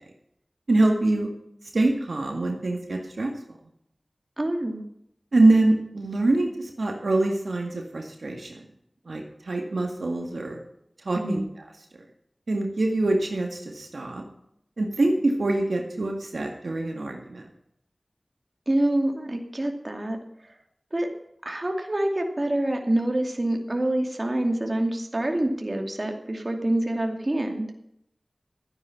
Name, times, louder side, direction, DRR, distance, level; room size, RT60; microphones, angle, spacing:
voice 1, 0.7-1.3 1.7-3.3 5.3-8.6 9.1-10.6 11.1-11.4 12.5-14.2 14.8-17.4, right 2 dB, 85° right, 2 dB, 1.9 m, -24 dB
voice 2, 4.4-4.8 11.1-11.5 18.7-20.2 20.9-21.1 21.4-27.7, right 1 dB, 45° right, 3 dB, 2.5 m, -26 dB
13.0 x 9.6 x 5.8 m, 0.75 s
wide cardioid pair, 40°, 0 cm